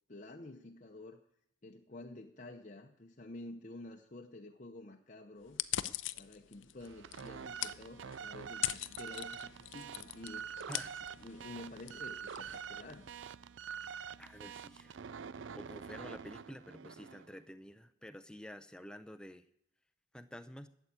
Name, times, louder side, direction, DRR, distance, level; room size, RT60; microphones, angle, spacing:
voice 1, 0.1-1.2 1.6-5.6 6.2-10.5 11.2-13.1, left 2 dB, 35° left, 2 dB, 0.8 m, -50 dB
sound 1, 5.5-13.2, left 14 dB, 65° left, 0.5 m, -42 dB
sound 2, 6.8-17.4, right 7 dB, 65° right, 0.4 m, -46 dB
voice 2, 10.7-11.1 14.2-19.4 20.1-20.7, equal, 5° left, 9 dB, 0.6 m, -50 dB
13.0 x 8.2 x 8.8 m, 0.73 s
head